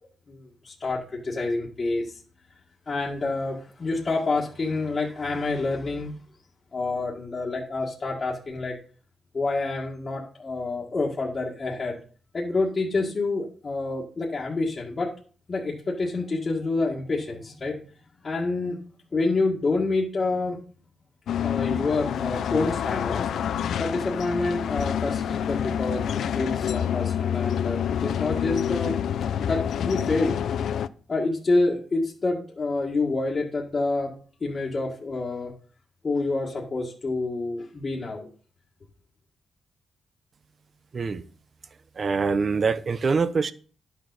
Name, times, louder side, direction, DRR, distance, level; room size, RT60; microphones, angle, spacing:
voice 1, 0.3-2.2 2.9-6.1 6.7-8.8 9.3-12.0 12.3-15.1 15.5-17.8 18.2-18.8 19.1-20.6 21.4-23.3 23.8-29.0 29.4-30.4 31.1-34.1 34.4-35.5 36.0-38.3, left 3 dB, 35° left, 1.7 m, -27 dB
sound 1, 21.3-30.9, left 9 dB, 80° left, 0.4 m, -27 dB
voice 2, 42.0-43.5, right 4 dB, 40° right, 0.7 m, -24 dB
11.5 x 6.8 x 4.1 m
cardioid pair, 120°, 0 cm